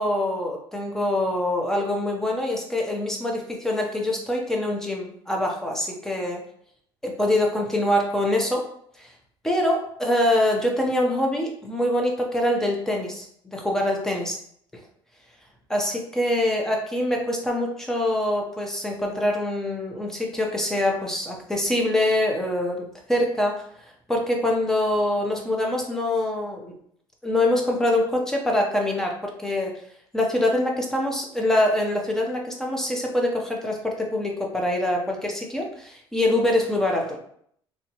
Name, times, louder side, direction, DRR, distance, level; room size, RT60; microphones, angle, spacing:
voice 1, 0.0-6.4 7.0-8.6 9.0-9.1 9.4-14.4 15.7-23.6 24.1-26.7 27.2-29.7 30.1-37.2, left 1 dB, 5° left, 0 dB, 0.5 m, -24 dB
3.3 x 2.8 x 2.7 m, 0.66 s
cardioid pair, 170°, 10 cm